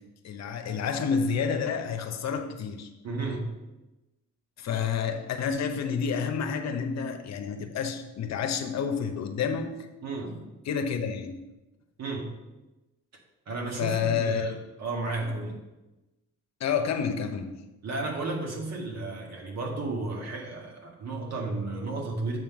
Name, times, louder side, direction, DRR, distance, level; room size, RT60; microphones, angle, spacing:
voice 1, 0.0-2.9 4.6-9.9 10.6-11.4 13.8-14.5 15.2-15.3 16.6-17.6, left 6 dB, 60° left, 7 dB, 0.8 m, -29 dB
voice 2, 3.0-3.5 10.0-10.5 12.0-12.3 13.5-15.6 17.8-22.4, right 3 dB, 60° right, 0 dB, 1.9 m, -33 dB
7.7 x 3.8 x 6.1 m, 1.0 s
cardioid pair, 90°, 30 cm